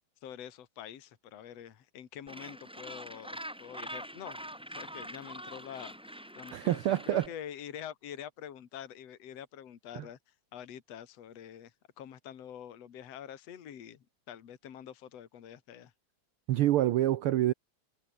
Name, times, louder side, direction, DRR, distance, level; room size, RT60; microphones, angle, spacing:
voice 1, 0.2-4.4 4.8-15.9, left 9 dB, 60° left, 2.9 m, -46 dB
Gull seagull, 2.3-7.3, equal, ahead, 1.6 m, -44 dB
voice 2, 6.5-7.3 16.5-17.5, right 13 dB, 85° right, 1.2 m, -26 dB
omnidirectional pair, 3.4 m